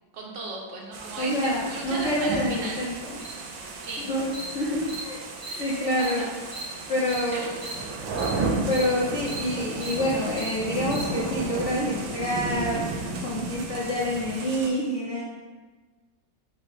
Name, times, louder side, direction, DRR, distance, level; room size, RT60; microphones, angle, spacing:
voice 1, 0.1-2.8 3.8-4.1 5.5-5.7 6.0-6.3 7.3-7.7, right 2 dB, 75° right, -2 dB, 1.5 m, -36 dB
sound 1, 0.9-14.7, right 3 dB, 90° right, 1.4 m, -33 dB
voice 2, 1.2-3.2 4.0-5.2 5.6-6.2 6.9-7.5 8.6-15.2, left 1 dB, 65° left, -6 dB, 0.7 m, -27 dB
Cricket, 3.2-3.3 3.8-3.9 4.3-4.4 4.9-5.0 5.4-5.5 6.0-6.1 6.5-6.6 7.1-7.2 7.6-7.7 8.2-8.3 8.7-8.8 9.3-9.4 9.8-9.9 10.4-10.5 10.9-11.0, right 3 dB, 35° right, 0.4 m, -38 dB
5.3 x 2.1 x 4.8 m, 1.3 s
omnidirectional pair, 2.0 m